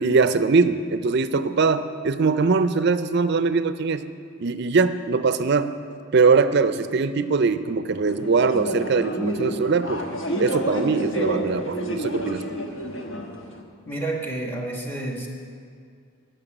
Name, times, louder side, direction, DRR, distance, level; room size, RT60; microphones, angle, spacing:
voice 1, 0.0-4.1 4.4-5.7 6.1-10.0 10.4-12.5, right 4 dB, 50° right, 12 dB, 0.4 m, -21 dB
sound 1, 8.1-13.6, right 1 dB, 60° left, 1.1 m, -29 dB
voice 2, 13.9-15.3, right 2 dB, 10° left, -1 dB, 1.3 m, -29 dB
10.5 x 6.6 x 8.9 m, 2.4 s
head